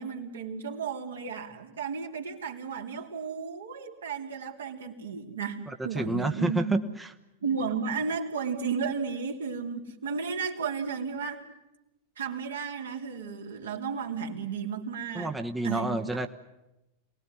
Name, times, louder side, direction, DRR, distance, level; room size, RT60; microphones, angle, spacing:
voice 1, 0.0-6.8 7.4-11.5 12.2-15.3 15.6-16.2, right 5 dB, 70° right, 2 dB, 2.9 m, -33 dB
voice 2, 5.9-7.1 15.1-16.3, right 2 dB, 5° right, 6 dB, 1.1 m, -29 dB
27.5 x 19.5 x 9.7 m, 0.95 s
figure-of-eight pair, 90°, 0 cm